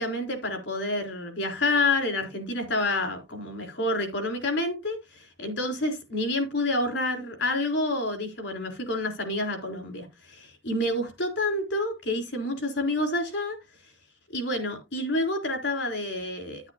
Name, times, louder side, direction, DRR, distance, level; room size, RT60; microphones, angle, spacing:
voice 1, 0.0-13.6 14.3-16.7, left 2 dB, 65° left, 3.8 m, -28 dB
10.5 x 9.9 x 2.6 m
head